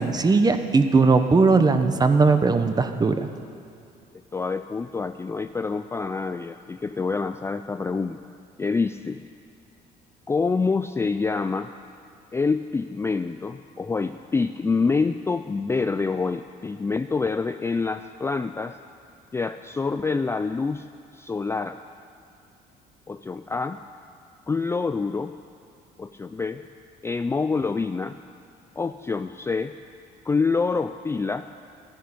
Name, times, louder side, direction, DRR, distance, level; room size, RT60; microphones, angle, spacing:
voice 1, 0.0-3.3, right 4 dB, 25° right, 8 dB, 1.0 m, -19 dB
voice 2, 4.3-8.3 8.6-9.2 10.3-11.7 12.3-18.8 19.3-20.8 21.1-21.8 23.1-23.8 24.5-25.3 26.0-26.6 27.0-28.2 28.8-29.7 30.3-31.5, left 4 dB, 15° left, 9 dB, 0.4 m, -26 dB
13.0 x 10.0 x 9.6 m, 2.6 s
cardioid pair, 110°, 17 cm